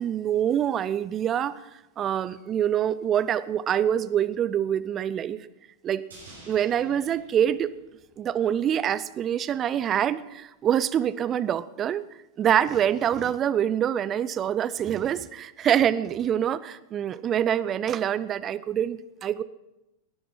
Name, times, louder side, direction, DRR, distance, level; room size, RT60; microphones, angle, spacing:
voice 1, 0.0-1.6 2.0-5.4 5.8-6.0 6.5-7.7 8.2-12.0 12.4-19.4, right 9 dB, 30° right, 0.6 m, -25 dB
sound 1, 6.1-8.5 8.8-8.9, right 2 dB, 70° right, 6.9 m, -51 dB
18.5 x 10.5 x 5.5 m
figure-of-eight pair, 90°, 0 cm